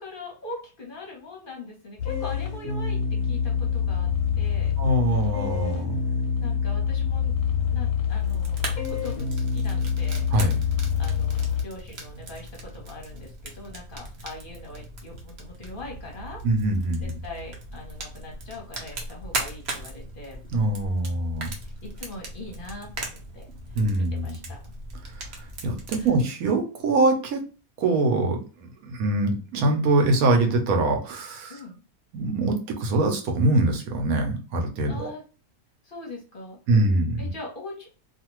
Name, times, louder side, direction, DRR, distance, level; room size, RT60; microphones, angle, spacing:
voice 1, 0.0-3.0 3.2-4.1 4.4-4.7 6.4-7.3 7.7-10.3 11.0-16.4 17.0-20.4 21.6-23.4 24.0-24.6 26.0-26.1 31.5-31.8 34.9-35.2 35.8-36.6 37.2-37.9, left 2 dB, 45° left, -1 dB, 0.8 m, -41 dB
sound 1, 2.0-11.6, left 7 dB, 85° left, 1.1 m, -26 dB
voice 2, 4.8-6.0 10.3-10.6 16.4-17.2 20.5-21.5 23.8-24.4 25.2-25.3 25.6-27.4 27.8-31.6 32.1-35.1 36.7-37.3, right 2 dB, 70° right, 4 dB, 1.2 m, -23 dB
Fire, 8.1-26.1, right 2 dB, 55° right, 0.8 m, -38 dB
2.8 x 2.4 x 2.9 m, 0.35 s
omnidirectional pair, 1.6 m